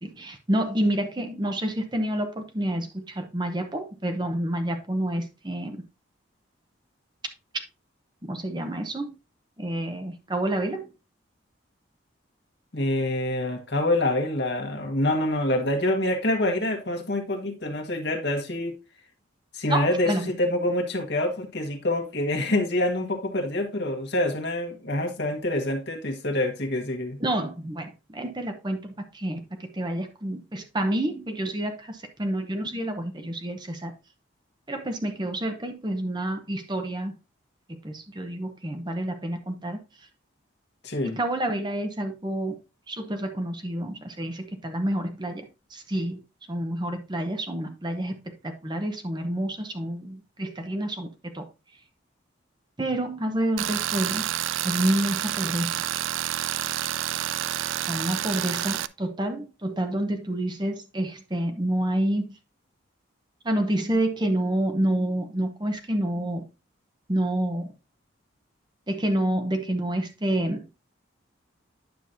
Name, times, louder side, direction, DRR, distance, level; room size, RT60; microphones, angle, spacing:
voice 1, 0.0-5.8 8.2-9.1 9.6-10.9 19.7-20.3 27.2-33.9 34.7-37.1 37.8-39.8 41.0-42.6 42.9-45.5 45.7-46.2 46.5-51.5 52.8-54.3 54.6-55.8 57.9-62.4 63.4-66.4 67.1-67.7 68.9-70.7, right 1 dB, 20° right, 0.8 m, -28 dB
voice 2, 12.7-18.8 19.5-27.2 40.8-41.2, left 1 dB, 60° left, 1.5 m, -26 dB
Tools, 53.6-58.9, right 12 dB, 80° right, 0.3 m, -29 dB
9.4 x 6.0 x 2.6 m
head